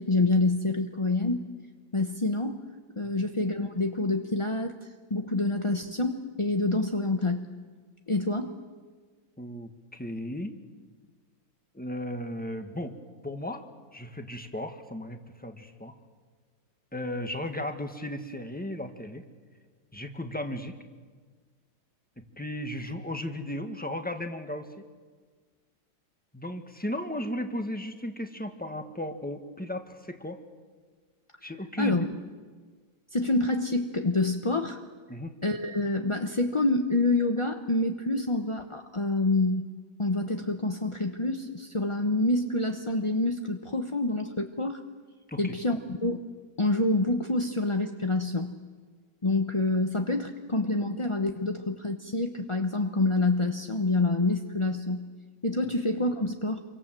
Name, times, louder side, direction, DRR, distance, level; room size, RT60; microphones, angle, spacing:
voice 1, 0.0-1.4 1.9-2.6 3.0-7.5 8.1-8.5 31.8-32.1 33.1-34.8 35.4-39.7 40.0-44.8 45.4-46.2 46.6-48.5 49.2-55.1 55.4-56.6, left 2 dB, 25° left, 5 dB, 0.7 m, -27 dB
voice 2, 9.4-10.5 11.7-13.0 13.2-13.6 13.9-15.9 16.9-19.2 19.9-20.7 22.2-24.7 26.3-30.4 31.4-32.1 35.1-35.3 45.3-45.5, left 1 dB, 5° left, 6 dB, 1.4 m, -35 dB
28.0 x 24.0 x 7.6 m, 1.5 s
omnidirectional pair, 2.0 m